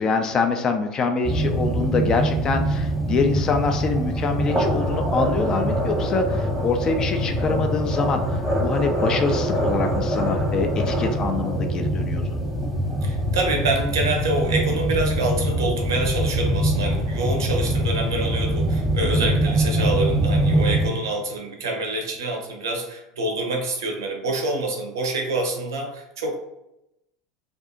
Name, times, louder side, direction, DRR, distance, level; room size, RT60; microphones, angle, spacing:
voice 1, 0.0-8.2 8.6-12.3 19.0-19.3, left 4 dB, 30° left, 6 dB, 0.3 m, -25 dB
sound 1, 1.2-20.9, right 1 dB, 5° left, 1.0 m, -23 dB
voice 2, 13.0-26.4, right 2 dB, 70° right, 2 dB, 0.5 m, -26 dB
2.6 x 2.3 x 2.4 m, 0.87 s
figure-of-eight pair, 75°, 2 cm